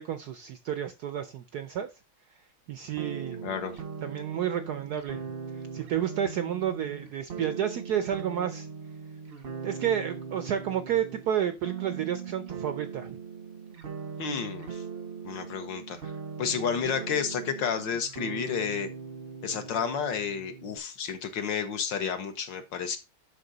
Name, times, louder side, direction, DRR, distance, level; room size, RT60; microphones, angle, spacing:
voice 1, 0.0-1.9 2.7-3.5 4.0-5.2 5.7-8.7 9.6-13.2, right 9 dB, 75° right, 0.9 m, -31 dB
sound 1, 3.0-20.8, right 6 dB, 45° right, 0.8 m, -40 dB
voice 2, 3.4-3.8 14.2-14.8 15.2-16.0 16.4-18.9 19.4-23.0, left 7 dB, 65° left, 1.5 m, -31 dB
11.5 x 3.9 x 3.9 m
omnidirectional pair, 2.3 m